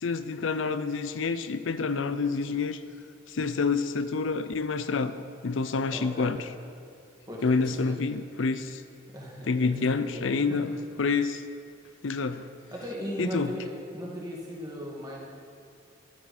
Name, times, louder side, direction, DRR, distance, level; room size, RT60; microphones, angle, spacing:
voice 1, 0.0-2.8 3.3-5.2 5.4-6.4 7.4-8.8 9.5-10.7 11.0-11.4 12.0-12.5 13.2-13.5, left 4 dB, 70° left, 12 dB, 0.5 m, -28 dB
voice 2, 5.9-6.4 7.3-8.0 9.1-10.6 12.7-15.3, equal, 20° right, -3 dB, 2.0 m, -38 dB
12.0 x 11.5 x 4.3 m, 2.5 s
head